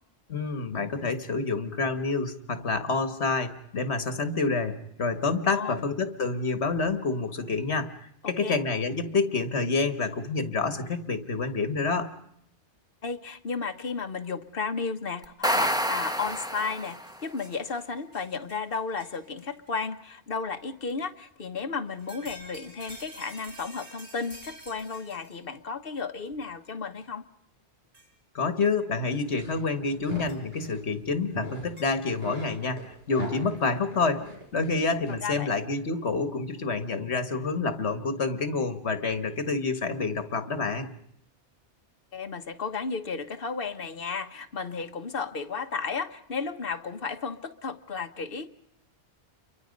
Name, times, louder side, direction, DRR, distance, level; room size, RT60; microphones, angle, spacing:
voice 1, 0.3-12.1 28.3-40.9, left 4 dB, 70° left, 10 dB, 1.9 m, -28 dB
voice 2, 5.5-5.9 8.2-8.6 13.0-27.3 35.2-35.5 42.1-48.5, left 5 dB, 55° left, 8 dB, 1.4 m, -33 dB
sound 1, 15.2-17.2, equal, 5° right, 1.1 m, -28 dB
sound 2, 15.6-15.7 16.0-19.7 20.5-20.6 21.9-25.4 26.3-26.4 27.9-28.1 30.3-30.4 31.8-31.9, right 1 dB, 85° right, 4.8 m, -49 dB
sound 3, 29.3-30.8 31.3-31.7 32.0-35.1, right 1 dB, 60° right, 7.2 m, -39 dB
29.5 x 24.0 x 5.3 m, 0.74 s
omnidirectional pair, 1.2 m